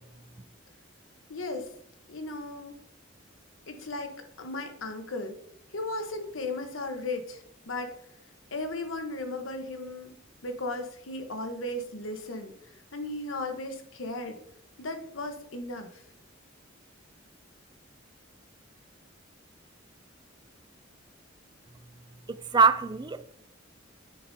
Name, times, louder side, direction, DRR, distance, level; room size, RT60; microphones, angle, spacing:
voice 1, 1.3-1.7 2.1-2.7 3.7-5.4 5.7-7.9 8.5-10.1 10.4-12.5 12.9-14.4 14.8-16.0, left 2 dB, 85° left, 1.1 m, -36 dB
voice 2, 22.3-23.3, right 5 dB, 20° right, 0.4 m, -23 dB
8.7 x 6.7 x 2.7 m
head